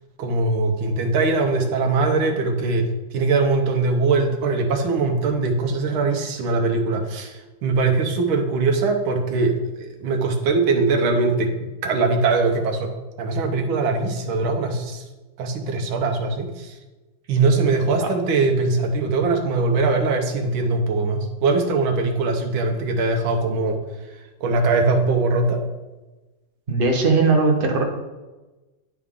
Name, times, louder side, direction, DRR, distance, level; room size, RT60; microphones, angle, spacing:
voice 1, 0.2-12.9 13.2-15.0 15.4-16.7 17.3-23.8 24.4-25.6, right 3 dB, 85° right, 3 dB, 1.6 m, -21 dB
voice 2, 26.7-27.8, right 3 dB, 40° right, 2 dB, 0.8 m, -19 dB
9.6 x 4.7 x 3.7 m, 1.1 s
omnidirectional pair, 2.2 m